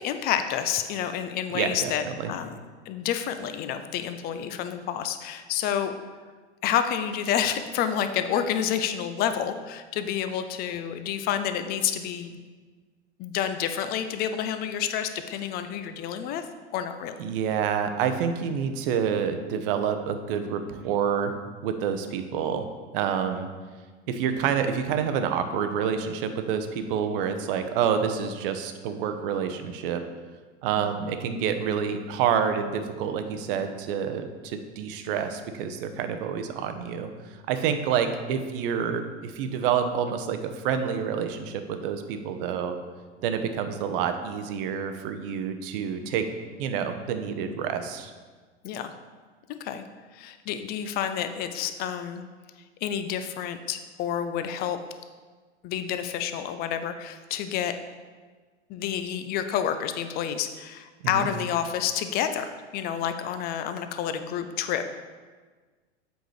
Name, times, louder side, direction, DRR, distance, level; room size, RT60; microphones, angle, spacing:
voice 1, 0.0-2.6 2.9-6.0 6.6-12.4 13.2-16.4 16.7-17.1 30.8-31.0 48.6-48.9 49.6-49.8 50.1-52.2 52.8-54.8 55.6-57.7 58.7-62.5 62.7-64.9, left 9 dB, 25° left, 9 dB, 0.4 m, -29 dB
voice 2, 1.5-2.3 17.2-21.3 21.6-22.7 22.9-23.5 24.1-30.0 30.6-37.1 37.5-42.8 43.2-46.3 46.6-48.1 61.0-61.3, right 7 dB, 50° right, 8 dB, 0.7 m, -28 dB
7.9 x 4.9 x 3.1 m, 1.4 s
figure-of-eight pair, 90°, 36 cm